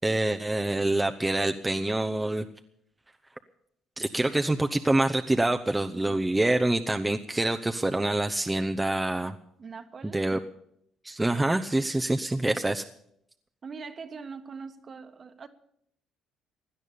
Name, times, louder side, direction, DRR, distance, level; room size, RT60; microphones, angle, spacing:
voice 1, 0.0-2.5 4.0-9.3 10.0-10.4 11.0-12.8, right 2 dB, 15° right, 6 dB, 0.8 m, -26 dB
voice 2, 5.9-6.3 9.6-10.3 13.6-15.5, right 5 dB, 40° right, 9 dB, 1.4 m, -42 dB
17.0 x 10.5 x 7.0 m, 0.72 s
supercardioid pair, 75°, 0 cm